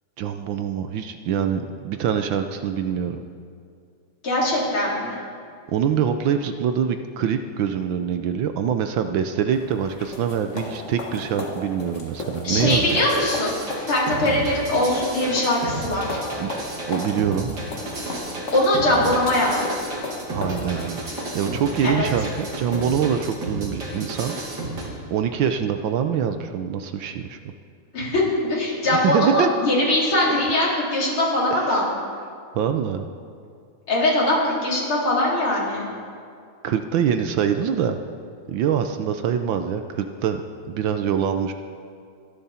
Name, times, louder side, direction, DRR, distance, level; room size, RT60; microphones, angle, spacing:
voice 1, 0.2-3.2 5.7-13.0 16.4-16.5 16.9-17.5 20.3-24.4 25.1-27.4 28.9-29.5 31.5-31.8 32.5-33.1 36.6-38.0 38.5-40.4 40.7-41.5, right 8 dB, 70° right, 8 dB, 1.4 m, -24 dB
voice 2, 4.2-5.1 12.4-13.6 13.9-16.2 18.5-19.6 21.8-22.1 27.9-28.2 28.5-31.9 33.9-35.9, left 1 dB, 70° left, -5 dB, 4.5 m, -21 dB
sound 1, 9.5-23.2, left 2 dB, 35° left, 1.8 m, -36 dB
sound 2, 12.5-24.9, right 2 dB, 50° right, 2.9 m, -32 dB
26.0 x 10.5 x 4.3 m, 2.3 s
omnidirectional pair, 2.4 m